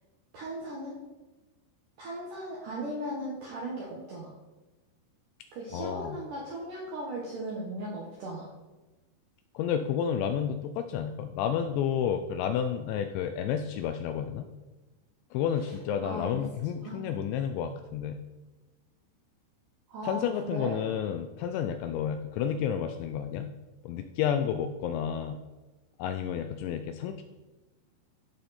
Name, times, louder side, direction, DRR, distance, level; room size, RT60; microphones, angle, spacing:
voice 1, 0.3-0.9 2.0-4.3 5.5-8.5 16.0-16.4 16.8-17.0 19.9-20.8, right 1 dB, 75° right, -4 dB, 1.9 m, -37 dB
voice 2, 5.7-6.2 9.5-14.5 15.3-18.2 20.0-23.5 23.8-25.4 26.0-27.2, left 8 dB, 85° left, 7 dB, 2.6 m, -31 dB
13.5 x 5.9 x 4.2 m, 1.2 s
omnidirectional pair, 5.7 m